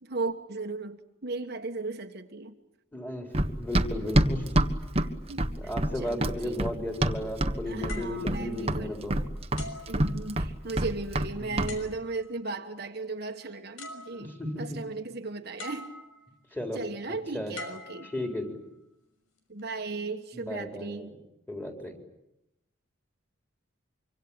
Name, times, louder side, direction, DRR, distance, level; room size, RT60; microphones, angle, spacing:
voice 1, 0.0-2.5 4.9-5.5 5.9-6.7 7.7-9.1 9.9-15.9 16.7-18.1 19.5-21.1, right 3 dB, 50° right, 1.4 m, -36 dB
voice 2, 2.9-4.4 5.6-9.2 11.4-11.7 14.1-14.8 16.5-16.8 17.3-17.5 18.0-18.6 20.3-21.1 21.5-21.9, left 1 dB, 10° left, 4.1 m, -35 dB
Run, 3.3-7.6 7.8-8.4 8.7-11.3 11.6-11.7, right 1 dB, 30° right, 1.4 m, -26 dB
sound 1, 7.9-9.1 9.6-10.7 11.7-12.4 13.4-13.5 13.8-14.6 15.6-16.4 17.5-18.7 19.4-19.6, left 3 dB, 85° left, 6.1 m, -45 dB
25.5 x 25.0 x 8.8 m
head